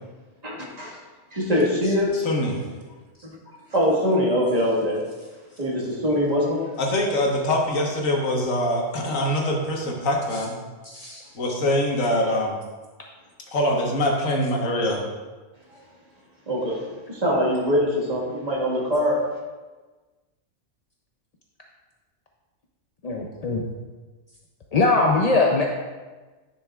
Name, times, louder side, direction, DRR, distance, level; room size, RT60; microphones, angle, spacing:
voice 1, 0.4-1.0 1.3-2.2 3.7-5.0 5.6-6.7 16.5-16.8 17.1-19.2, equal, 30° right, -5 dB, 1.7 m, -23 dB
voice 2, 2.1-2.6 6.8-10.6 11.4-12.6 13.5-15.0, left 1 dB, 90° left, 0 dB, 1.6 m, -24 dB
voice 3, 10.8-11.2 23.0-23.6 24.7-25.6, left 3 dB, 55° left, 0 dB, 0.4 m, -21 dB
10.5 x 6.1 x 2.4 m, 1.3 s
omnidirectional pair, 1.3 m